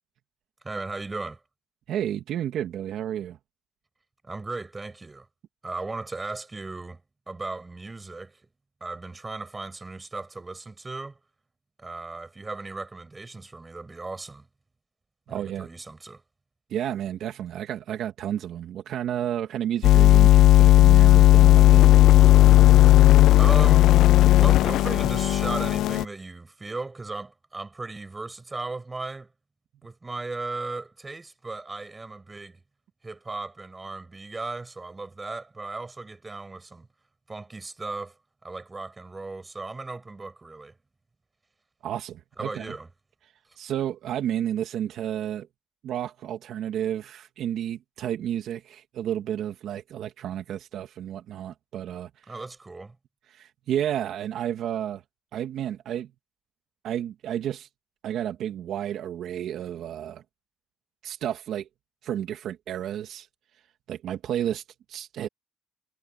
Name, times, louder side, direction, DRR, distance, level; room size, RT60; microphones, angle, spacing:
voice 1, 0.6-1.4 4.2-5.3 5.6-7.0 7.3-8.4 8.8-11.2 11.8-14.5 15.3-16.2 23.4-23.9 24.4-29.3 29.8-32.6 33.0-36.9 37.3-38.2 38.4-40.7 42.4-42.9 52.3-53.0, right 3 dB, 20° right, 6.4 m, -36 dB
voice 2, 1.9-3.4 15.3-15.7 16.7-22.0 41.8-42.8 43.6-45.5 45.8-52.1 53.3-55.0 55.3-56.1 56.8-57.7 58.0-60.2 61.0-61.7 62.0-63.3 63.9-64.6 64.9-65.3, right 10 dB, 70° right, 2.5 m, -31 dB
sound 1, 19.8-26.0, left 14 dB, 80° left, 0.4 m, -15 dB
cardioid pair, 95°, 0 cm